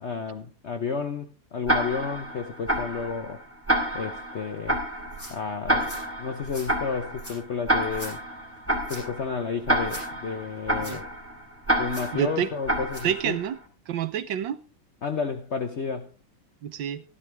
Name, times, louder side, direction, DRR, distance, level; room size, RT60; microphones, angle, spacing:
voice 1, 0.0-3.4 3.9-4.8 5.3-8.2 8.9-11.1 11.8-13.4 15.0-16.1, left 5 dB, 65° left, 0.6 m, -31 dB
Tick-tock, 1.7-13.5, right 1 dB, 5° right, 2.2 m, -29 dB
sound 1, 5.0-13.2, right 1 dB, 40° left, 7.9 m, -45 dB
voice 2, 12.1-12.5 13.0-13.6 13.9-14.6 16.6-17.0, right 9 dB, 65° right, 1.4 m, -27 dB
14.0 x 12.5 x 3.5 m
omnidirectional pair, 2.3 m